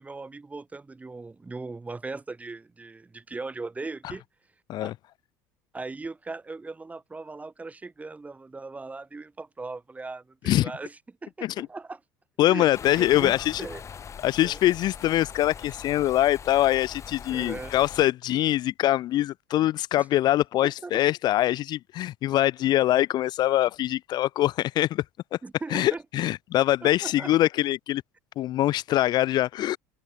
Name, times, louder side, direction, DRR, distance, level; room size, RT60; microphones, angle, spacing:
voice 1, 0.0-4.2 4.8-4.9 5.7-12.0 12.5-13.8 14.4-14.6 17.3-17.7 20.0-20.1 20.6-20.9 25.4-26.0 26.8-27.3, right 3 dB, 15° right, 4.4 m, -39 dB
voice 2, 12.4-13.6 14.2-25.0 25.3-25.4 25.7-28.0 28.4-29.8, left 14 dB, 50° left, 0.6 m, -23 dB
sound 1, 12.7-18.0, left 7 dB, 35° left, 4.2 m, -41 dB
open air
supercardioid pair, 95°, 9 cm